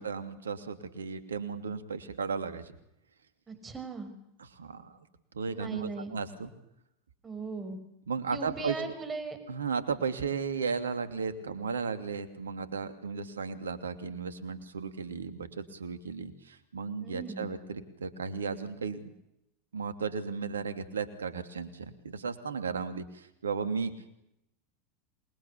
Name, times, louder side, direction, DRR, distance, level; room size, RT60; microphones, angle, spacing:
voice 1, 0.0-2.7 4.4-5.1 5.3-6.5 8.1-8.8 9.5-19.1 19.7-24.2, right 5 dB, 75° right, 10 dB, 2.9 m, -35 dB
voice 2, 3.5-4.1 5.5-6.1 7.2-7.8 8.3-9.4 17.0-17.5, right 4 dB, 20° right, 9 dB, 5.7 m, -38 dB
27.5 x 22.0 x 8.6 m, 0.80 s
figure-of-eight pair, 85°, 0 cm